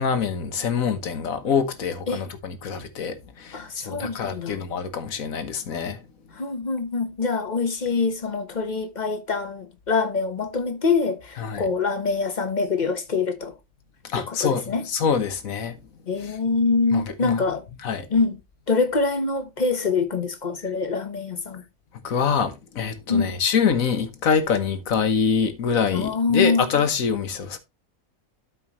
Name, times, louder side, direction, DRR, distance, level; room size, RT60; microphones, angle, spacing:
voice 1, 0.0-6.0 11.4-11.6 14.0-15.8 16.9-17.4 17.8-18.1 22.0-27.6, left 6 dB, 75° left, 1.6 m, -25 dB
voice 2, 3.5-4.6 6.3-13.5 14.1-14.9 16.1-17.6 18.1-18.4 18.7-21.6 23.1-23.3 25.9-26.7, left 4 dB, 35° left, 1.2 m, -25 dB
12.5 x 4.9 x 3.1 m
omnidirectional pair, 1.5 m